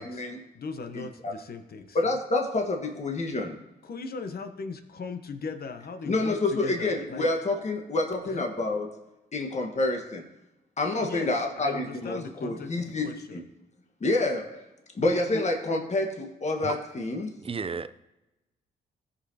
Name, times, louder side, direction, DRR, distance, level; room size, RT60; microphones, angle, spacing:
voice 1, 0.0-0.4 0.9-1.3 1.9-3.6 6.1-8.9 9.3-10.3 10.8-13.4 14.0-14.6 14.9-17.3, left 2 dB, 40° left, 2 dB, 1.5 m, -28 dB
voice 2, 0.5-2.0 3.8-7.3 8.2-8.5 11.0-13.4 15.1-15.4, left 4 dB, 55° left, 7 dB, 1.0 m, -38 dB
voice 3, 17.4-17.9, right 5 dB, 30° right, 13 dB, 0.5 m, -32 dB
15.0 x 5.6 x 2.9 m, 0.97 s
supercardioid pair, 55°, 18 cm